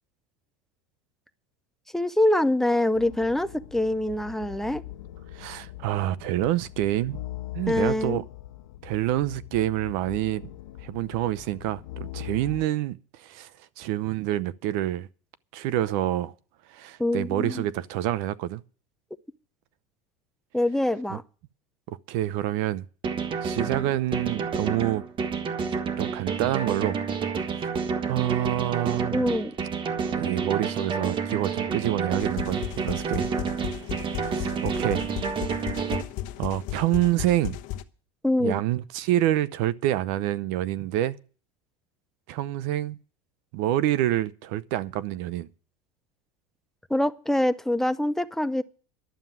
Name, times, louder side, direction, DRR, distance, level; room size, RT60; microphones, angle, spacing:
voice 1, 1.9-4.8 7.7-8.2 17.0-17.7 20.5-21.2 29.1-29.5 38.2-38.6 46.9-48.6, left 1 dB, ahead, 0.6 m, -24 dB
sound 1, 2.9-12.6, left 15 dB, 90° left, 1.0 m, -42 dB
voice 2, 5.3-7.2 7.5-8.2 8.8-10.5 10.8-13.5 13.8-15.1 15.5-16.3 16.7-18.6 21.1-21.2 21.9-22.8 23.4-25.0 26.0-27.0 27.4-27.7 28.1-29.3 30.1-33.3 34.0-35.0 36.4-37.6 38.4-41.2 42.3-43.0 43.5-45.5, right 14 dB, 65° right, 0.8 m, -27 dB
sound 2, 23.0-36.0, right 6 dB, 30° right, 1.4 m, -29 dB
sound 3, 32.2-37.8, left 13 dB, 55° left, 1.0 m, -35 dB
11.5 x 7.2 x 9.2 m
supercardioid pair, 125°, 16 cm